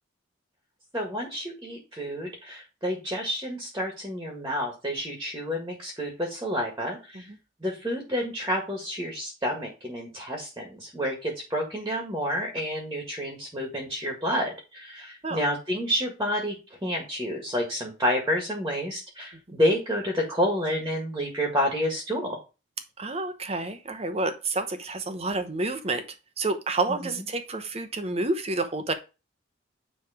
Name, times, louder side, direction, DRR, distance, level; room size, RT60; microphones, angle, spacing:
voice 1, 0.9-7.2 7.6-16.5 16.8-22.4 27.0-27.2, equal, 15° right, 1 dB, 1.7 m, -29 dB
voice 2, 23.0-26.0 26.4-28.9, right 2 dB, 30° right, 9 dB, 0.9 m, -29 dB
9.6 x 3.3 x 4.9 m, 0.30 s
head